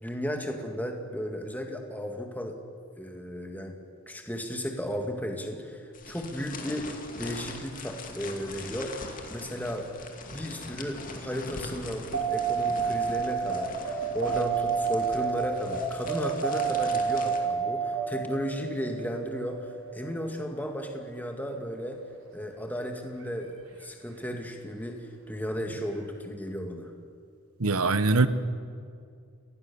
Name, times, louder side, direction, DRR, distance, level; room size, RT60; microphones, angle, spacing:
voice 1, 0.0-2.6 3.0-3.8 4.1-9.0 9.3-9.9 10.3-22.0 22.3-26.9, equal, 10° left, 3 dB, 2.0 m, -34 dB
sound 1, 5.9-17.4, left 3 dB, 40° left, 2.5 m, -42 dB
sound 2, 12.1-20.5 23.2-23.3, right 6 dB, 65° right, 6.1 m, -29 dB
voice 2, 27.6-28.3, right 3 dB, 80° right, 13 dB, 1.2 m, -22 dB
28.5 x 19.5 x 7.1 m, 2.3 s
head